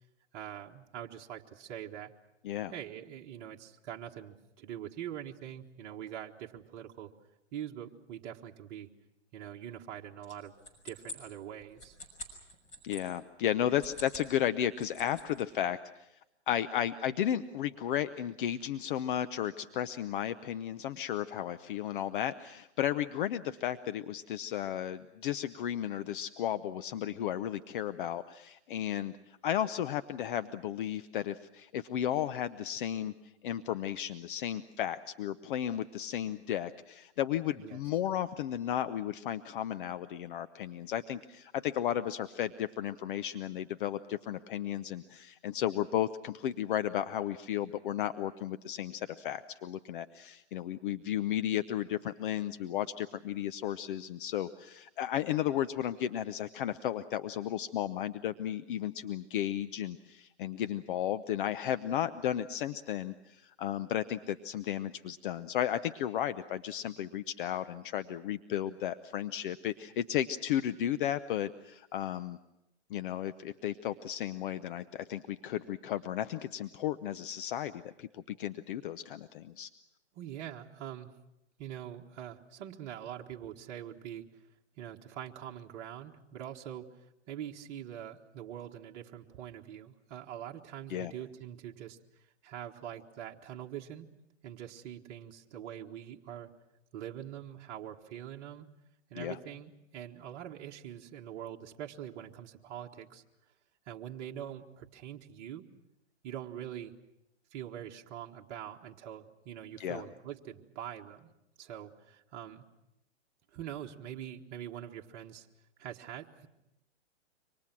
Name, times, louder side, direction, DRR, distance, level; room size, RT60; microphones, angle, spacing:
voice 1, 0.3-2.1 2.7-7.1 7.5-8.9 9.3-10.5 10.8-12.0 37.6-37.8 80.1-81.1 81.6-84.4 84.8-86.9 87.3-94.1 94.4-96.5 96.9-98.7 99.1-103.2 103.9-105.6 106.2-106.9 107.5-111.3 111.6-112.6 113.5-115.5 115.8-116.5, right 10 dB, 40° right, 0 dB, 1.6 m, -44 dB
sound 1, 10.2-13.0 13.7-14.3 14.6-15.4, left 1 dB, 20° left, 6.0 m, -46 dB
voice 2, 12.8-16.1 16.5-33.1 33.4-72.4 72.9-79.7 90.9-91.1 99.2-99.4 109.8-110.0, left 11 dB, 45° left, 12 dB, 0.8 m, -34 dB
27.5 x 25.0 x 6.1 m, 0.88 s
hypercardioid pair, 130°, 35 cm